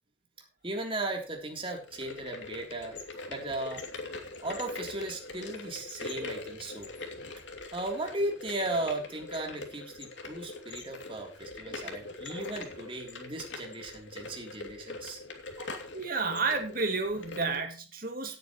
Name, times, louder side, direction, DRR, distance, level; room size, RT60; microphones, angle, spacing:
voice 1, 0.6-3.0 3.3-3.8 4.4-6.9 7.7-15.2 15.6-15.9, right 2 dB, 30° right, 2 dB, 3.4 m, -36 dB
sound 1, 1.8-17.6, left 3 dB, 80° left, 2.9 m, -43 dB
voice 2, 15.9-18.4, right 4 dB, 50° right, 5 dB, 2.4 m, -31 dB
17.5 x 9.1 x 3.1 m, 0.30 s
head